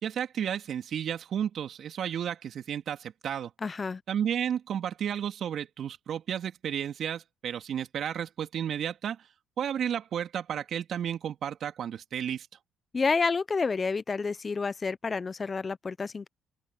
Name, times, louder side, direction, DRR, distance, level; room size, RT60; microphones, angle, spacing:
voice 1, 0.0-3.5 4.1-9.2 9.6-12.5, right 9 dB, 60° right, 3.1 m, -32 dB
voice 2, 3.6-4.0 12.9-16.3, left 4 dB, 35° left, 0.9 m, -29 dB
open air
hypercardioid pair, 60°, 0 cm